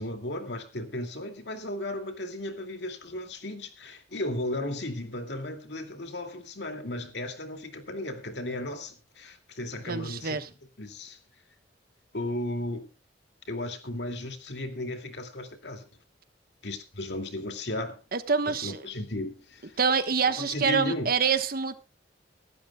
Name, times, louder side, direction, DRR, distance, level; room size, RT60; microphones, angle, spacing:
voice 1, 0.0-10.4 10.8-11.2 12.1-12.9 13.5-15.9 16.6-18.0 18.5-19.8 20.3-21.1, left 1 dB, 70° left, 2.4 m, -35 dB
voice 2, 9.9-10.5 18.1-18.8 19.8-21.8, right 5 dB, 55° right, 1.2 m, -26 dB
24.0 x 12.0 x 2.3 m
head